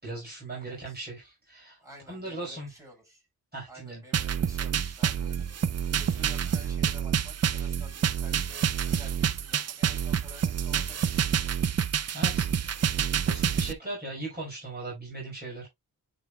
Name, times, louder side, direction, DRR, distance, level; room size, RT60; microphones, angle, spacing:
voice 1, 0.0-1.8 2.1-2.7 3.5-4.0 12.1-12.5 13.2-15.7, right 2 dB, 25° right, 4.6 m, -38 dB
voice 2, 0.7-1.0 1.8-3.2 3.7-5.4 5.9-11.3 13.8-14.0, right 1 dB, 10° right, 5.4 m, -51 dB
sound 1, 4.1-13.7, right 8 dB, 45° right, 0.5 m, -28 dB
10.0 x 4.2 x 2.3 m
wide cardioid pair, 105°, 36 cm